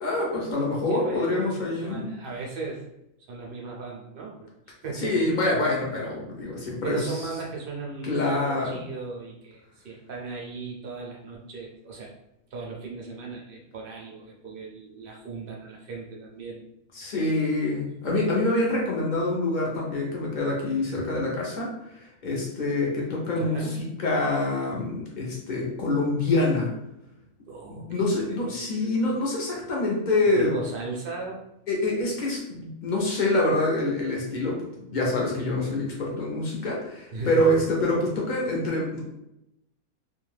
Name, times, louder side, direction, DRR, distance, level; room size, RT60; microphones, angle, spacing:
voice 1, 0.0-2.1 4.9-7.2 8.0-8.8 16.9-26.7 27.9-30.5 31.7-39.1, left 2 dB, 55° left, -3 dB, 0.5 m, -26 dB
voice 2, 0.9-2.8 3.3-5.2 6.8-12.1 12.5-16.6 23.3-23.7 27.5-29.0 30.4-31.4 37.1-37.6, right 4 dB, 65° right, -2 dB, 0.5 m, -37 dB
2.5 x 2.3 x 3.1 m, 0.84 s
omnidirectional pair, 1.6 m